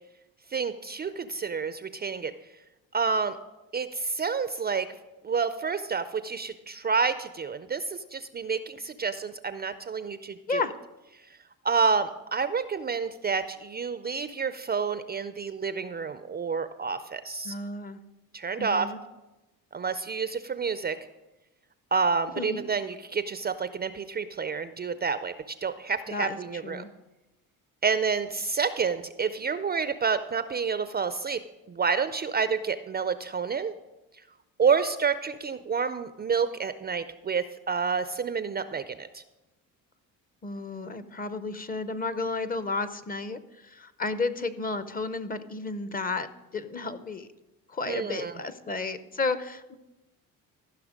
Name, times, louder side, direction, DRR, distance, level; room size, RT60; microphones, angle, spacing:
voice 1, 0.5-2.3 2.9-3.4 3.7-4.9 5.2-10.6 11.6-17.5 18.3-18.9 19.7-21.0 21.9-25.3 25.6-26.8 27.8-31.4 31.7-33.7 34.6-39.2 47.9-48.4, right 5 dB, 25° right, 12 dB, 0.4 m, -29 dB
voice 2, 17.4-18.0 18.6-19.0 22.4-22.7 26.1-26.4 26.6-26.9 40.4-47.3 47.7-49.8, left 3 dB, 25° left, 13 dB, 0.6 m, -32 dB
14.5 x 5.8 x 5.0 m, 1.0 s
cardioid pair, 95°, 36 cm